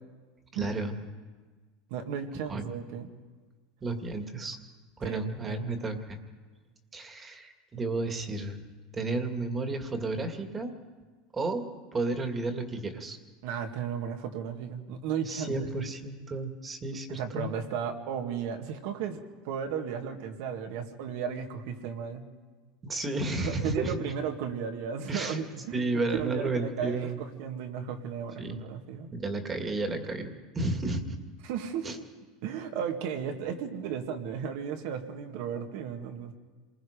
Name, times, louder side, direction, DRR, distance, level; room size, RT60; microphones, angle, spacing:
voice 1, 0.5-1.0 2.5-2.7 3.8-4.6 5.0-6.2 6.9-10.7 11.3-11.6 11.9-13.2 15.3-17.5 22.8-23.9 25.1-25.4 25.7-27.2 28.4-28.6 29.1-31.2 31.8-32.0, right 2 dB, 20° right, 5 dB, 2.1 m, -32 dB
voice 2, 1.9-3.1 5.0-5.8 13.4-15.9 17.1-22.3 23.4-29.1 31.4-31.9 32.4-36.3, right 7 dB, 65° right, 5 dB, 2.1 m, -35 dB
27.0 x 20.5 x 5.2 m, 1.4 s
supercardioid pair, 125°, 0 cm